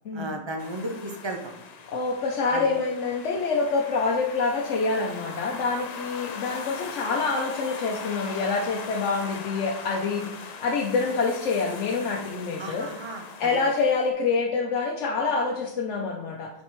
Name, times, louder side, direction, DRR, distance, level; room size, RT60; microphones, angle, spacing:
voice 1, 0.1-1.7 2.5-2.7 7.1-7.2 12.6-13.2, right 1 dB, 30° right, 4 dB, 0.6 m, -34 dB
sound 1, 0.6-14.1, left 5 dB, 55° left, 0.4 m, -40 dB
voice 2, 1.9-12.9 13.4-16.5, left 4 dB, 85° left, 0 dB, 1.0 m, -26 dB
7.3 x 4.3 x 3.1 m, 0.82 s
omnidirectional pair, 1.2 m